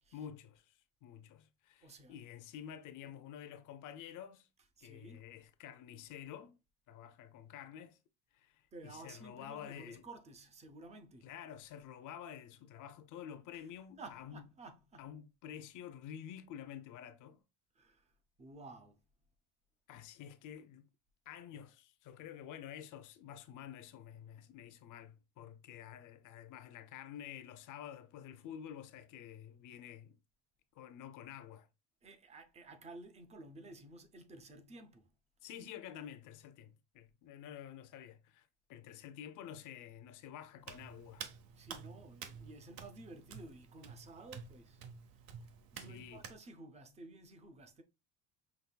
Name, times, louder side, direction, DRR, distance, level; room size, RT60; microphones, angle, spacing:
voice 1, 0.1-4.5 4.8-6.6 6.9-8.0 8.3-10.0 11.2-14.4 15.0-17.4 19.9-20.9 21.3-30.2 30.7-31.7 35.4-41.3 45.7-46.2, left 9 dB, 55° left, 0.6 m, -50 dB
voice 2, 1.8-2.2 4.8-5.3 8.7-11.3 13.5-13.6 14.0-15.0 17.8-18.1 18.4-19.0 32.0-35.1 41.5-44.8 45.3-47.8, right 2 dB, 20° right, 0.4 m, -53 dB
Hands, 40.6-46.4, right 7 dB, 70° right, 0.8 m, -50 dB
5.9 x 3.0 x 2.2 m
cardioid pair, 180°, 38 cm